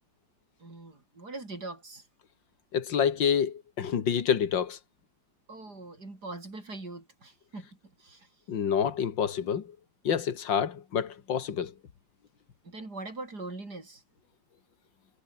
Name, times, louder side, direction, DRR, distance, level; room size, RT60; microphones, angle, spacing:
voice 1, 0.6-2.1 5.5-8.3 12.6-14.0, right 2 dB, 55° right, 6.1 m, -42 dB
voice 2, 2.7-4.8 8.5-9.8 10.0-11.7, left 8 dB, 75° left, 2.5 m, -28 dB
omnidirectional pair, 2.0 m